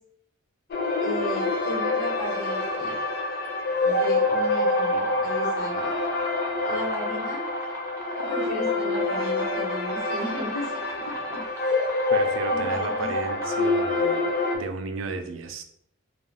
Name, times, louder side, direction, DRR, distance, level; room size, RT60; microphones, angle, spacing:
sound 1, 0.7-14.6, left 2 dB, 50° left, 0.5 m, -26 dB
voice 1, 1.0-3.0 3.8-5.9 6.7-7.4 8.2-11.4 12.5-13.1, equal, 90° left, -1 dB, 1.0 m, -35 dB
sound 2, 3.8-14.2, right 1 dB, 15° right, 0.5 m, -40 dB
voice 2, 12.1-14.3 14.5-15.6, right 3 dB, 85° right, 7 dB, 0.4 m, -34 dB
2.3 x 2.3 x 3.3 m, 0.70 s
head